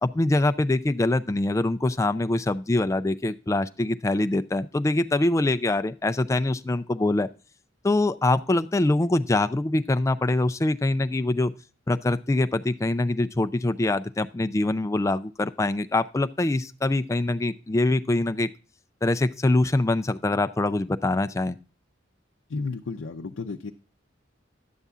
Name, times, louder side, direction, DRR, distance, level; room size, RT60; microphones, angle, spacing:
voice 1, 0.0-7.3 7.8-11.5 11.9-18.5 19.0-21.6, left 2 dB, 15° left, 11 dB, 0.4 m, -24 dB
voice 2, 22.5-23.7, left 4 dB, 85° left, 3 dB, 0.5 m, -32 dB
10.5 x 6.9 x 3.5 m, 0.35 s
head